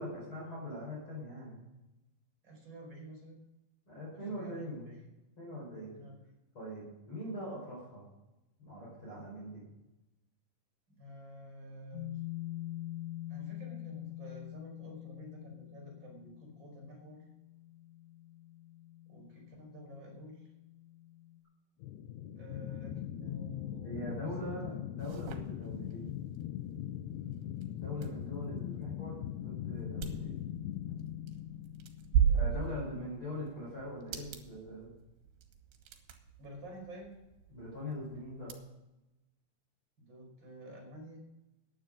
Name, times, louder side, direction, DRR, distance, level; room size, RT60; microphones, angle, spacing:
voice 1, 0.0-1.6 3.9-4.9 5.4-6.0 6.5-8.0 8.6-9.6 23.8-26.1 27.8-30.4 32.3-34.9 37.5-38.5, left 1 dB, 30° left, -4 dB, 5.0 m, -42 dB
voice 2, 2.4-3.4 4.1-5.1 5.9-6.3 10.9-12.2 13.3-17.3 19.1-20.5 22.3-24.5 32.2-33.1 36.4-37.1 40.0-41.2, equal, 25° right, 1 dB, 5.3 m, -50 dB
sound 1, 11.9-21.4, left 15 dB, 50° left, 2.5 m, -45 dB
sound 2, 21.8-32.7, left 11 dB, 80° left, 2.6 m, -41 dB
sound 3, 25.0-38.5, right 8 dB, 75° right, 3.3 m, -38 dB
15.0 x 10.0 x 5.1 m, 0.99 s
omnidirectional pair, 5.0 m